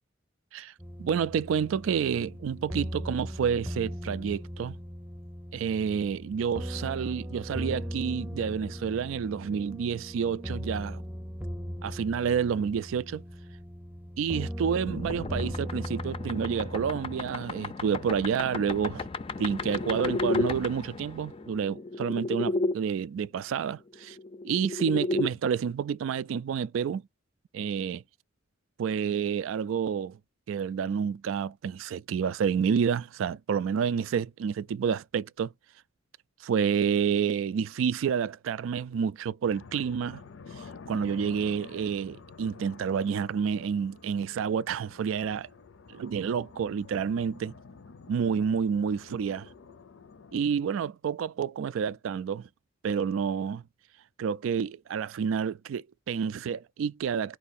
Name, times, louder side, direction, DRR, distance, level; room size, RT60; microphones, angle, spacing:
sound 1, 0.8-17.2, equal, 10° right, 0.7 m, -38 dB
voice 1, 1.0-4.8 5.5-11.0 11.8-13.2 14.2-19.0 19.4-24.2 24.4-27.0 27.5-28.0 28.8-30.2 30.5-35.5 36.4-40.2 40.9-45.5 45.9-47.5 48.1-49.5 50.3-52.5 52.8-53.6 54.2-57.4, right 7 dB, 85° right, 0.3 m, -29 dB
sound 2, 14.8-22.7 24.0-25.3, left 2 dB, 30° left, 0.4 m, -33 dB
sound 3, 39.4-50.5, left 4 dB, 75° left, 0.6 m, -49 dB
4.6 x 2.6 x 4.1 m
head